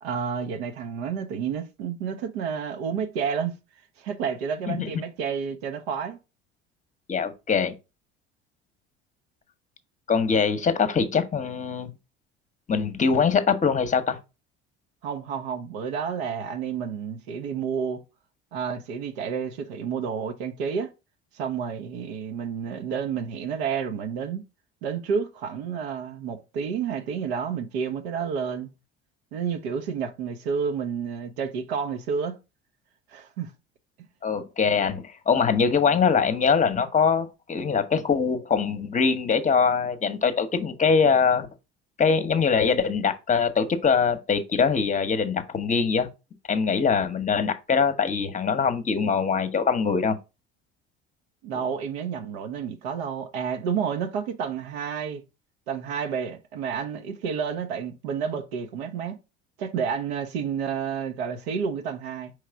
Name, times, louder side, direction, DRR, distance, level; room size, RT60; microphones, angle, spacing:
voice 1, 0.0-3.5 4.0-6.2 15.0-18.0 18.5-20.9 21.3-24.4 24.8-28.7 29.3-32.4 33.1-33.5 51.4-55.2 55.7-59.2 59.6-62.3, right 6 dB, 70° right, 0.8 m, -30 dB
voice 2, 7.1-7.7 10.1-11.9 12.7-14.2 34.2-41.5 42.0-46.1 46.5-50.2, left 6 dB, 25° left, 0.9 m, -23 dB
4.8 x 3.2 x 3.4 m
figure-of-eight pair, 60°, 33 cm